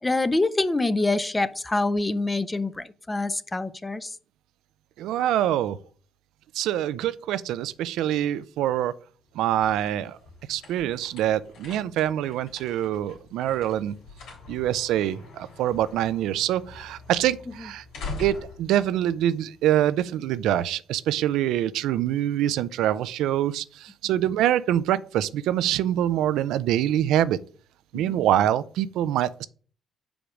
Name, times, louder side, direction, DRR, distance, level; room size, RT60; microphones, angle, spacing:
voice 1, 0.0-4.2 27.9-28.2, left 2 dB, 15° left, 0.6 m, -26 dB
voice 2, 5.0-5.8 6.5-8.9 9.4-10.2 10.5-13.9 14.5-17.8 18.2-27.4 27.9-29.5, right 12 dB, 90° right, 0.4 m, -25 dB
sound 1, 9.2-20.0, left 3 dB, 90° left, 3.5 m, -44 dB
5.2 x 4.9 x 5.9 m
cardioid pair, 90°, 0 cm